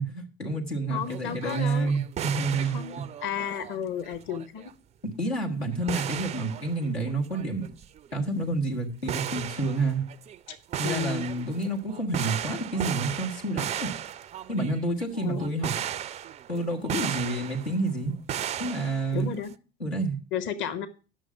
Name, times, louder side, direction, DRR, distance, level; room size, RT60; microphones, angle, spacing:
voice 1, 0.0-2.8 5.0-7.6 8.1-10.0 10.8-13.9 14.5-15.7 16.5-18.1 18.6-19.3 19.8-20.2, right 2 dB, 85° left, -2 dB, 1.6 m, -29 dB
voice 2, 0.9-1.9 2.6-3.0 3.2-4.7 10.5-10.6 10.8-11.3 15.2-15.5 19.1-19.5 20.3-20.9, left 8 dB, 40° left, 13 dB, 0.9 m, -33 dB
sound 1, 1.0-3.8 4.0-4.7 5.7-8.1 8.5-8.7 9.0-17.9 18.3-19.5, right 10 dB, 25° right, 0.4 m, -36 dB
10.0 x 6.4 x 5.7 m, 0.36 s
figure-of-eight pair, 65°, 31 cm